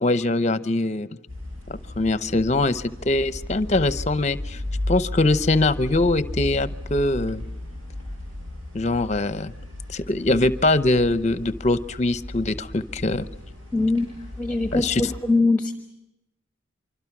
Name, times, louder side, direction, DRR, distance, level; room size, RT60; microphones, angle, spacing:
voice 1, 0.0-1.1 1.7-4.6 4.9-7.4 8.7-9.5 9.9-13.3 14.7-15.0, left 2 dB, 35° left, 14 dB, 0.7 m, -22 dB
sound 1, 1.3-15.2, left 1 dB, 80° right, 7.9 m, -35 dB
voice 2, 13.7-15.7, left 3 dB, 5° left, 7 dB, 1.2 m, -22 dB
25.5 x 25.0 x 6.0 m, 0.88 s
head